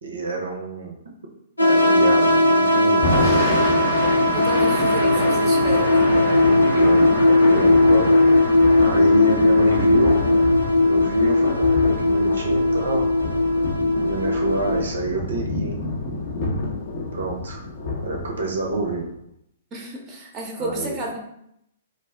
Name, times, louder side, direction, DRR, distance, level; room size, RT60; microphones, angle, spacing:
voice 1, 0.0-1.0 1.7-3.2 6.1-8.1 8.8-10.2 10.8-13.1 14.0-15.8 17.1-17.6 18.0-19.0 20.6-21.0, right 3 dB, 65° right, 1 dB, 0.5 m, -28 dB
sound 1, 1.6-14.8, left 2 dB, 85° left, 0.5 m, -18 dB
Thunder / Rain, 2.9-19.1, left 3 dB, 50° left, 0.7 m, -28 dB
voice 2, 4.3-6.1 19.7-21.2, right 2 dB, 20° right, -1 dB, 0.7 m, -31 dB
2.4 x 2.0 x 3.4 m, 0.77 s
figure-of-eight pair, 115°, 0 cm